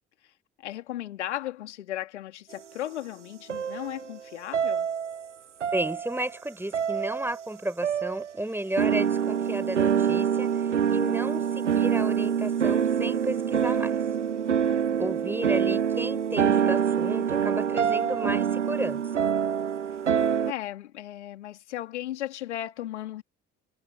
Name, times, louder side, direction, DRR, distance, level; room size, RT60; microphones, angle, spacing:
voice 1, 0.6-4.9 14.4-15.1 20.5-23.2, left 13 dB, 75° left, 2.6 m, -36 dB
sound 1, 3.5-4.2 4.5-5.3 5.6-6.4 6.7-7.5 7.8-8.3 8.8-20.5, right 8 dB, 85° right, 0.7 m, -26 dB
voice 2, 5.7-13.9 15.0-19.2, right 1 dB, 5° right, 6.1 m, -33 dB
figure-of-eight pair, 55°, 35 cm